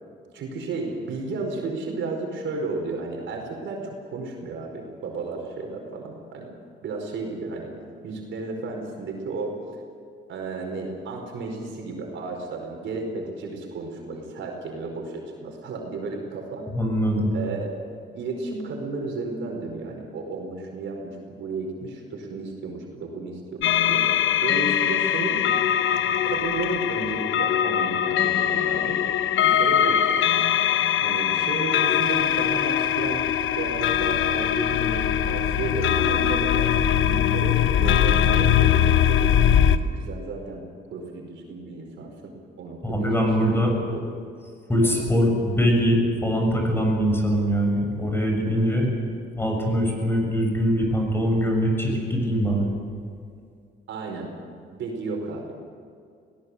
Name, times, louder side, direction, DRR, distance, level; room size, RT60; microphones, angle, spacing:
voice 1, 0.3-6.5 6.8-7.7 8.0-9.5 10.3-16.6 17.3-17.7 18.1-24.1 24.4-25.4 26.2-29.0 29.4-30.0 31.0-39.2 39.8-40.6 40.9-43.5 43.9-44.0 44.8-44.9 48.5-48.9 53.9-54.3 54.7-55.5, right 3 dB, 75° right, 1 dB, 4.9 m, -33 dB
voice 2, 16.7-17.3 42.8-43.7 44.7-48.9 49.4-52.7, equal, 10° left, 1 dB, 7.1 m, -22 dB
sound 1, 23.6-39.8, left 9 dB, 85° left, 0.9 m, -21 dB
21.5 x 17.5 x 8.1 m, 2.2 s
cardioid pair, 90°, 20 cm